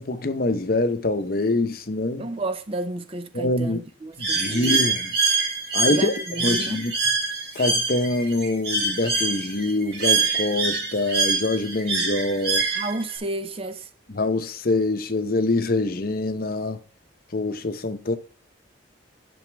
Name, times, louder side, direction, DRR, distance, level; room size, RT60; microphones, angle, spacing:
voice 1, 0.0-2.2 3.3-3.8 4.2-5.1 5.7-6.1 6.4-6.9 7.5-12.7 14.1-16.8 17.3-18.2, left 2 dB, 50° left, 0.8 m, -25 dB
voice 2, 2.2-4.8 5.9-6.9 12.7-13.9, right 2 dB, 30° right, 0.5 m, -32 dB
Bird, 4.2-13.2, right 4 dB, 55° right, 2.1 m, -25 dB
10.5 x 6.2 x 3.4 m
head